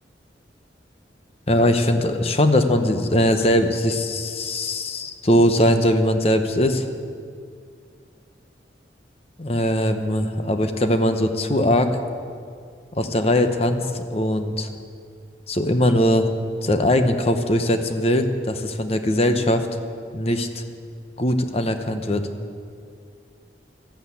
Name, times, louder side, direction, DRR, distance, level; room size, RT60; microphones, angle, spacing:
voice 1, 1.5-6.9 9.4-12.0 12.9-14.7 15.5-16.3 16.6-19.7 20.1-20.6 21.2-22.2, left 1 dB, 35° left, 7 dB, 0.9 m, -20 dB
13.0 x 12.0 x 8.4 m, 2.2 s
head